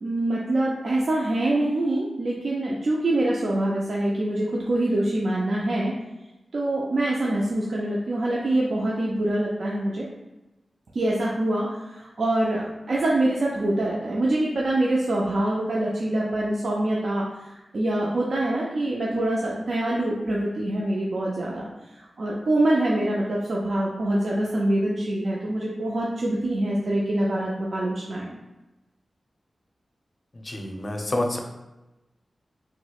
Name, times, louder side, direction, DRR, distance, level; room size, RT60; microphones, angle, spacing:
voice 1, 0.0-5.9 6.5-10.1 10.9-28.4, right 1 dB, 70° right, -4 dB, 0.4 m, -25 dB
voice 2, 30.4-31.4, left 1 dB, 40° left, 2 dB, 0.5 m, -28 dB
4.3 x 2.1 x 2.3 m, 1.0 s
wide cardioid pair, 70°, 0 cm